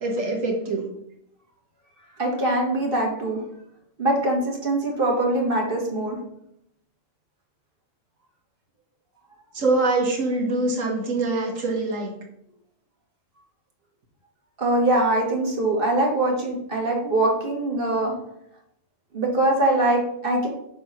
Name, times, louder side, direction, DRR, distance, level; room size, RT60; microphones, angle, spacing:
voice 1, 0.0-0.8 9.5-12.1, right 2 dB, 90° right, -1 dB, 1.7 m, -24 dB
voice 2, 2.2-3.4 4.0-6.2 14.6-18.1 19.1-20.5, right 1 dB, 45° right, -1 dB, 1.6 m, -22 dB
6.8 x 3.1 x 5.5 m, 0.77 s
omnidirectional pair, 1.3 m